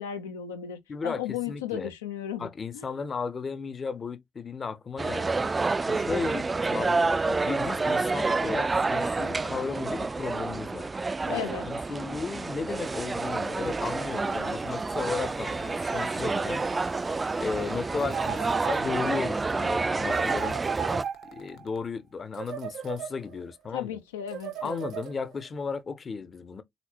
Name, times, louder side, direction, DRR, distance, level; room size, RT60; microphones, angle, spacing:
voice 1, 0.0-2.9 11.3-11.7 23.7-24.9, left 9 dB, 85° left, 0.6 m, -35 dB
voice 2, 0.9-1.9 2.4-5.5 5.9-10.9 11.3-16.6 17.4-20.6 21.3-24.0 24.6-26.6, left 5 dB, 40° left, 0.7 m, -35 dB
sound 1, 5.0-21.0, right 3 dB, 30° right, 0.4 m, -29 dB
sound 2, 12.7-21.8, left 8 dB, 65° left, 1.1 m, -53 dB
sound 3, 18.0-19.3 20.1-21.6 22.3-23.5 24.3-25.5, right 8 dB, 65° right, 0.8 m, -36 dB
4.2 x 4.0 x 2.9 m
hypercardioid pair, 45°, 0 cm